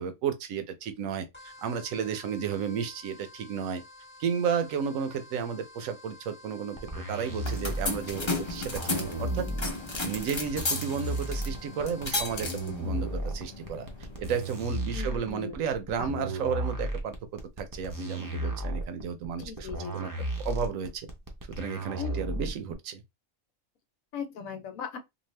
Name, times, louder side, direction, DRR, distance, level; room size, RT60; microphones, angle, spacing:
voice 1, 0.0-3.8 4.2-9.5 10.0-13.9 14.2-17.1 17.6-20.1 20.4-21.1 21.5-23.0, right 7 dB, 80° right, 1.0 m, -33 dB
sound 1, 1.3-12.7, left 2 dB, 10° left, 1.2 m, -51 dB
sound 2, 6.8-22.7, right 1 dB, 25° right, 0.4 m, -34 dB
sound 3, 7.2-14.6, left 2 dB, 30° left, 0.6 m, -35 dB
voice 2, 14.9-15.6 16.0-16.1 19.4-20.1 22.0-22.1 24.1-25.0, left 6 dB, 85° left, 1.2 m, -38 dB
2.7 x 2.4 x 3.1 m
omnidirectional pair, 1.4 m